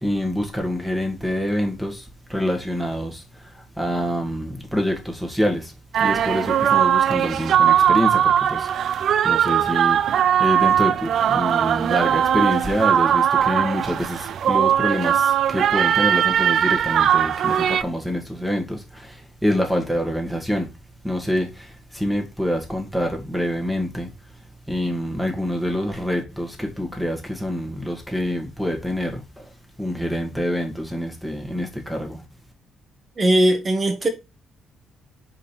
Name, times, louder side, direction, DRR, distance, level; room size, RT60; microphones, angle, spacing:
voice 1, 0.0-3.5 3.8-5.7 6.0-20.7 21.0-24.1 24.7-29.5 29.8-32.2, equal, 5° right, 1.9 m, -26 dB
sound 1, 5.9-17.8, right 9 dB, 50° right, 0.3 m, -19 dB
voice 2, 33.2-34.1, right 1 dB, 25° right, 1.6 m, -19 dB
5.1 x 5.1 x 4.5 m
cardioid pair, 150°, 0 cm